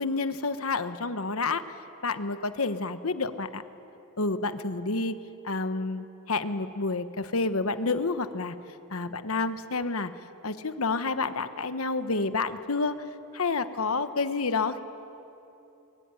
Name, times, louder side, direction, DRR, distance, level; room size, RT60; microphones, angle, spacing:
voice 1, 0.0-1.6 2.0-3.6 4.2-5.2 5.4-8.5 8.9-10.1 10.4-12.9 13.3-14.8, left 3 dB, 70° left, 10 dB, 1.2 m, -29 dB
23.0 x 22.5 x 9.9 m, 2.9 s
head